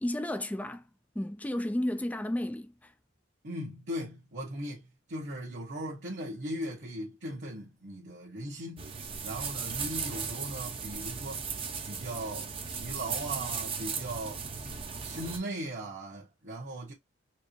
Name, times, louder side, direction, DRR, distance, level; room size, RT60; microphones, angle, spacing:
voice 1, 0.0-0.9 1.1-2.9, left 1 dB, 10° left, 0.4 m, -32 dB
voice 2, 3.4-8.9 9.2-11.4 11.9-14.4 15.0-16.9, right 1 dB, 65° right, 1.4 m, -38 dB
sound 1, 8.8-15.4, right 5 dB, 30° right, 0.7 m, -37 dB
4.6 x 2.1 x 3.0 m
head